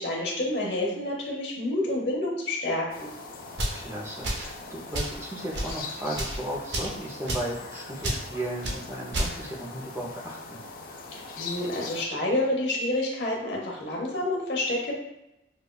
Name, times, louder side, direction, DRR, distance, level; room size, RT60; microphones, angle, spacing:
voice 1, 0.0-3.1 11.1-14.9, left 1 dB, 70° left, -3 dB, 0.9 m, -28 dB
sound 1, 2.9-12.1, left 3 dB, 50° left, 0.4 m, -41 dB
sound 2, 3.5-3.8 4.2-4.5 4.9-5.2 5.5-5.7 6.1-6.4 6.7-6.9 7.3-7.5 8.0-8.2 8.6-8.8 9.1-9.3, right 1 dB, 75° right, 0.7 m, -30 dB
voice 2, 3.7-10.6, right 1 dB, 15° right, -3 dB, 0.5 m, -35 dB
4.9 x 2.2 x 2.2 m, 0.89 s
head